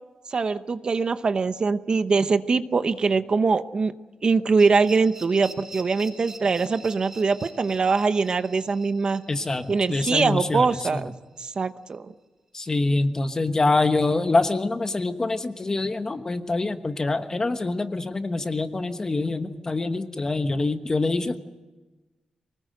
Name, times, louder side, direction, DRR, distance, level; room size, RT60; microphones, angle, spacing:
voice 1, 0.3-3.9 4.2-9.2 9.7-11.1 11.4-12.1, right 4 dB, 40° right, 11 dB, 0.8 m, -23 dB
sound 1, 4.6-11.4, right 2 dB, 20° right, 4.5 m, -46 dB
voice 2, 9.3-11.0 12.5-21.4, left 3 dB, 25° left, 9 dB, 1.2 m, -25 dB
24.5 x 19.5 x 7.9 m, 1.2 s
wide cardioid pair, 145°, 2 cm